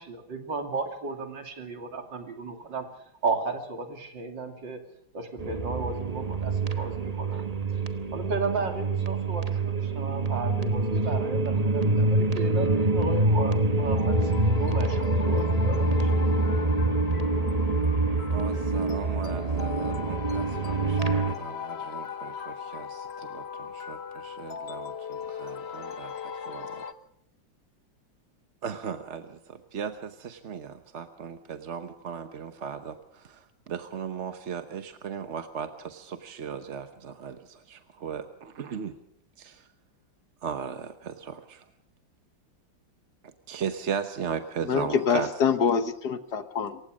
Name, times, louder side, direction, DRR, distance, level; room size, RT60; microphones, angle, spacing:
voice 1, 0.0-2.9 3.2-4.8 5.1-7.4 7.7-7.8 8.1-16.1, right 3 dB, 70° right, 3.3 m, -34 dB
sound 1, 5.4-21.3, right 2 dB, 25° right, 0.9 m, -26 dB
sound 2, 13.8-26.9, left 7 dB, 40° left, 1.1 m, -38 dB
voice 2, 18.3-26.1 26.5-26.6 28.6-38.9 39.4-39.7 40.4-41.6 43.5-45.3, right 7 dB, 45° right, 1.1 m, -37 dB
voice 3, 44.7-46.8, left 6 dB, 60° left, 1.6 m, -25 dB
27.0 x 16.0 x 6.4 m
omnidirectional pair, 2.1 m